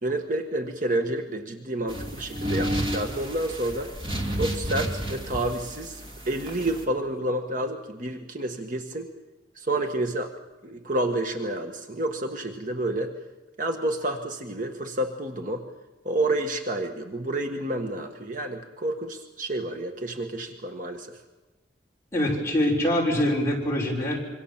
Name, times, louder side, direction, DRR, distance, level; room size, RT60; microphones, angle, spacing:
voice 1, 0.0-3.9 4.4-9.1 9.5-10.3 10.6-13.1 13.6-15.6 16.0-21.1, right 1 dB, 45° right, 4 dB, 1.5 m, -29 dB
sound 1, 1.9-6.8, equal, 25° right, 2.7 m, -31 dB
voice 2, 22.1-24.2, left 1 dB, 15° left, -4 dB, 5.9 m, -24 dB
26.5 x 24.5 x 7.3 m, 1.1 s
head